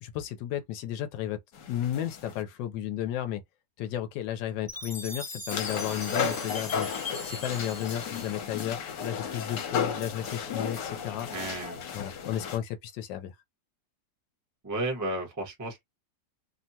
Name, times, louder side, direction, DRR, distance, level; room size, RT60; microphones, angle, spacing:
voice 1, 0.0-1.4 1.7-3.4 3.8-6.9 7.2-11.3 11.9-13.3, left 11 dB, 90° left, 1.3 m, -33 dB
sound 1, 1.5-2.4 5.5-12.6, left 7 dB, 70° left, 1.4 m, -34 dB
Chime, 4.7-8.9, left 2 dB, 15° left, 0.9 m, -40 dB
voice 2, 11.3-11.8 14.6-15.8, right 2 dB, 15° right, 0.7 m, -33 dB
3.4 x 2.2 x 2.7 m
omnidirectional pair, 1.9 m